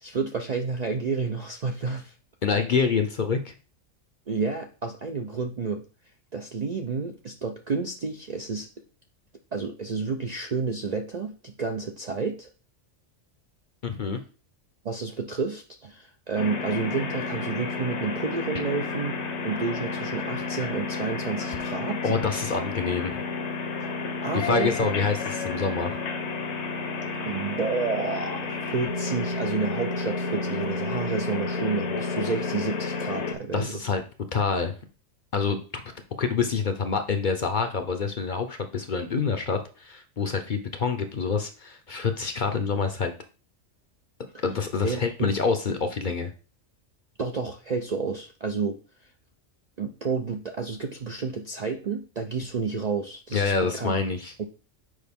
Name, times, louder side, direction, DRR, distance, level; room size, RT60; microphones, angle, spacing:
voice 1, 0.0-2.1 4.3-5.8 6.3-8.7 9.5-12.5 14.8-22.1 24.2-24.7 27.3-33.7 44.3-44.4 44.8-45.3 47.2-48.8 49.8-53.9, right 4 dB, 50° right, 3 dB, 0.5 m, -30 dB
voice 2, 2.4-3.5 13.8-14.2 22.0-23.2 24.3-26.0 33.5-34.0 34.3-34.7 35.3-35.8 36.2-43.1 44.4-46.3 53.3-54.3, left 5 dB, 50° left, 7 dB, 0.7 m, -26 dB
sound 1, 16.4-33.3, left 4 dB, 65° left, 1.1 m, -31 dB
6.4 x 5.0 x 3.5 m, 0.37 s
omnidirectional pair, 1.3 m